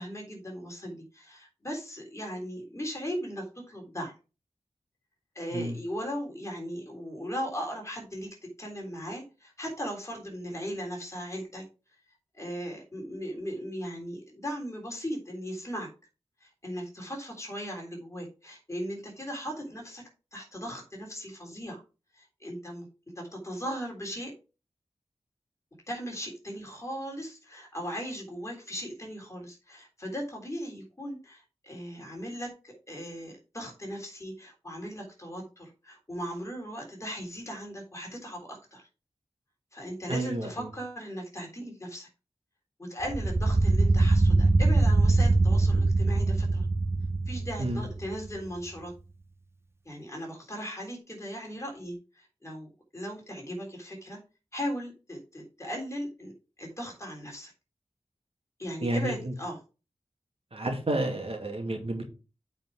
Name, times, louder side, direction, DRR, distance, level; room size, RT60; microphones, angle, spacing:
voice 1, 0.0-4.1 5.3-8.3 8.6-11.6 12.3-15.9 16.4-20.0 20.3-21.8 22.1-22.9 23.1-24.3 25.9-38.9 39.7-42.1 42.8-46.6 47.3-48.9 49.8-54.2 54.5-56.3 56.6-57.5 58.6-59.6, equal, 25° left, 0 dB, 3.5 m, -38 dB
voice 2, 40.1-40.7 47.6-47.8 58.8-59.1 60.5-62.1, right 1 dB, 55° right, 2 dB, 2.4 m, -30 dB
sound 1, 43.0-48.3, right 2 dB, 20° right, 0.9 m, -23 dB
8.2 x 5.1 x 4.9 m, 0.32 s
wide cardioid pair, 90°, 11 cm